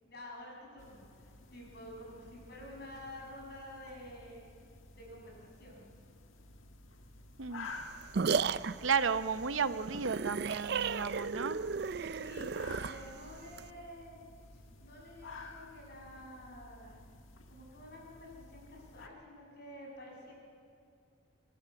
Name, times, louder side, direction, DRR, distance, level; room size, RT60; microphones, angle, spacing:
voice 1, 0.0-4.4 4.9-5.8 12.1-14.2 14.5-17.0 17.5-20.3, left 1 dB, 50° left, -2 dB, 6.6 m, -50 dB
sound 1, 0.8-19.1, left 3 dB, 90° left, 1.6 m, -53 dB
sound 2, 7.7-13.7, right 5 dB, 55° right, 0.4 m, -35 dB
voice 2, 8.8-11.6, right 6 dB, 80° right, 12 dB, 0.8 m, -33 dB
24.5 x 13.0 x 8.4 m, 2.5 s
head